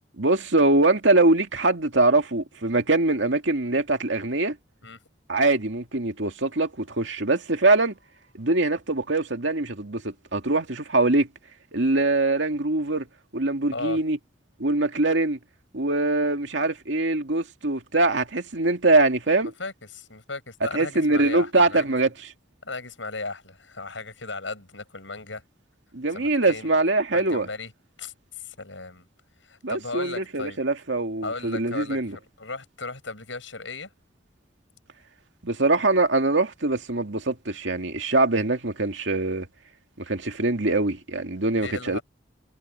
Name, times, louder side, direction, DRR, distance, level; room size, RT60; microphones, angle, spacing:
voice 1, 0.2-4.6 5.3-8.0 8.4-11.3 11.7-13.1 13.3-14.2 14.6-15.4 15.7-19.5 20.7-22.1 25.9-27.5 29.6-32.2 35.4-39.5 40.1-42.0, right 2 dB, 80° right, 2.2 m, -23 dB
voice 2, 19.4-21.9 22.6-25.4 26.1-26.7 27.1-27.7 28.0-29.1 29.4-30.6 31.2-33.9 41.5-42.0, left 3 dB, 85° left, 7.8 m, -36 dB
head